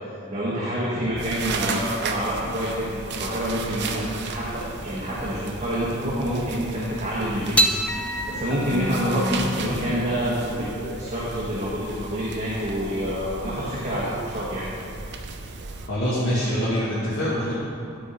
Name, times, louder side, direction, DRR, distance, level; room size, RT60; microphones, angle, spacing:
voice 1, 0.3-7.6 8.0-14.6, equal, 35° right, -7 dB, 1.2 m, -27 dB
sound 1, 1.2-15.9, right 4 dB, 55° right, 0.6 m, -35 dB
sound 2, 7.6-14.1, equal, 5° left, 0.4 m, -29 dB
voice 2, 15.9-17.5, equal, 70° left, -11 dB, 1.9 m, -24 dB
12.0 x 4.3 x 5.1 m, 2.7 s
head